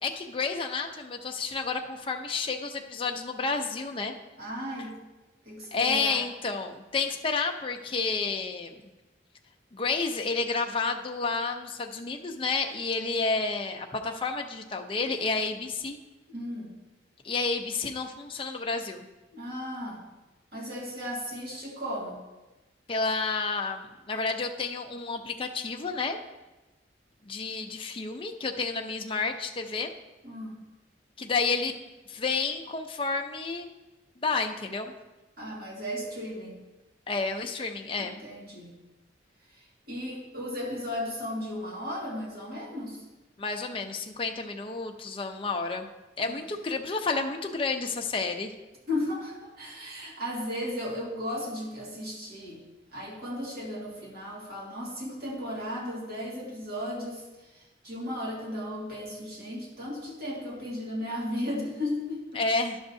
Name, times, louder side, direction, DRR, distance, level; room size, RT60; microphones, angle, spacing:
voice 1, 0.0-4.1 5.7-8.8 9.7-16.0 17.2-19.1 22.9-26.2 27.2-29.9 31.2-31.7 32.1-33.7 34.2-34.9 37.1-38.2 43.4-45.9 46.2-48.5 62.3-62.8, left 4 dB, 30° left, 3 dB, 0.6 m, -30 dB
voice 2, 4.4-5.0 5.5-6.2 16.3-16.7 19.3-20.0 20.5-22.2 30.2-30.6 35.4-36.6 38.0-38.7 39.6-43.0 46.3-46.4 48.9-52.6 52.9-62.2, left 1 dB, 55° right, -4 dB, 1.9 m, -35 dB
11.0 x 7.1 x 2.7 m, 1.1 s
head